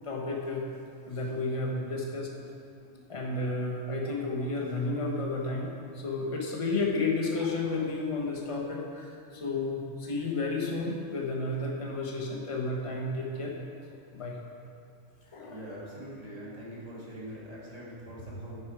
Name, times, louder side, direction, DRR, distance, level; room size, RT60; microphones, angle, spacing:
voice 1, 0.0-0.6 1.0-2.4 3.1-13.5 14.1-14.3 15.3-15.6, left 3 dB, 25° left, -1 dB, 1.3 m, -32 dB
voice 2, 15.5-18.6, equal, 30° right, -7 dB, 2.6 m, -43 dB
10.5 x 8.1 x 4.9 m, 2.4 s
omnidirectional pair, 1.3 m